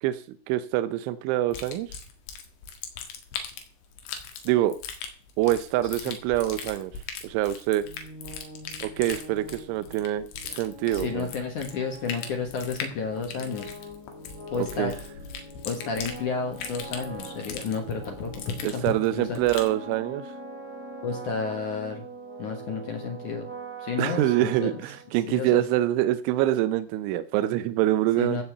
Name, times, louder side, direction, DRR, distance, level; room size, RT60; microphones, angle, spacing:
voice 1, 0.0-2.0 4.5-4.8 5.4-7.9 8.8-11.3 14.6-14.9 18.6-20.3 24.0-28.4, right 14 dB, 85° right, 12 dB, 3.1 m, -25 dB
sound 1, 1.5-19.8, left 6 dB, 80° left, 4.2 m, -40 dB
sound 2, 7.8-25.4, right 1 dB, 5° right, 2.1 m, -43 dB
voice 2, 10.9-13.7 14.5-14.9 15.7-19.4 21.0-22.0 22.4-23.5 23.8-24.7 25.3-25.6 28.2-28.4, left 5 dB, 60° left, 3 dB, 2.4 m, -31 dB
15.5 x 5.6 x 7.9 m, 0.42 s
omnidirectional pair, 5.3 m